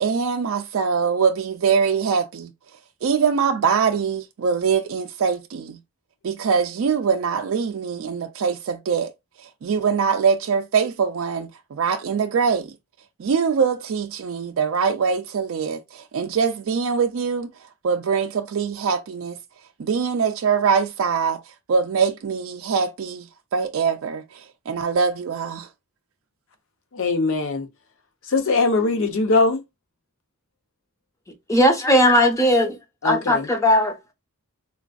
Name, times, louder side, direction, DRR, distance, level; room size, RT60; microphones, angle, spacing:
voice 1, 0.0-2.5 3.0-5.8 6.2-9.1 9.4-12.7 13.2-17.5 17.8-19.4 19.8-25.7, right 6 dB, 65° right, 0.4 m, -23 dB
voice 2, 26.9-27.7 28.3-29.6 33.0-33.5, left 3 dB, 65° left, 0.7 m, -21 dB
voice 3, 31.5-32.8 33.0-34.1, left 1 dB, 15° left, 0.7 m, -18 dB
3.8 x 2.5 x 2.3 m
head